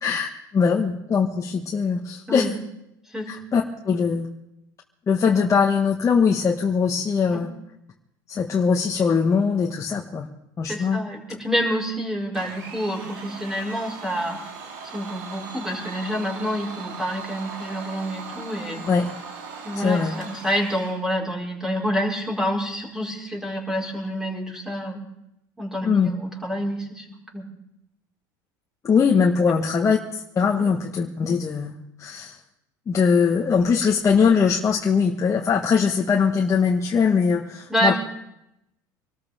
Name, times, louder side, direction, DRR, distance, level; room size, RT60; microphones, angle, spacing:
voice 1, 0.0-2.5 3.3-4.3 5.1-7.5 8.3-10.3 10.6-11.0 18.9-19.1 19.8-20.1 25.8-26.1 28.8-32.4 32.9-38.0, left 6 dB, 30° left, 0 dB, 1.5 m, -21 dB
voice 2, 10.6-14.4 14.9-18.8 19.6-25.0 25.6-27.1 27.3-27.5 29.5-29.6 30.6-30.7 37.7-38.0, equal, 5° right, -2 dB, 5.0 m, -28 dB
Domestic sounds home sounds, 12.3-21.0, right 5 dB, 75° right, 2.6 m, -39 dB
25.5 x 13.5 x 3.7 m, 0.84 s
supercardioid pair, 90°, 10 cm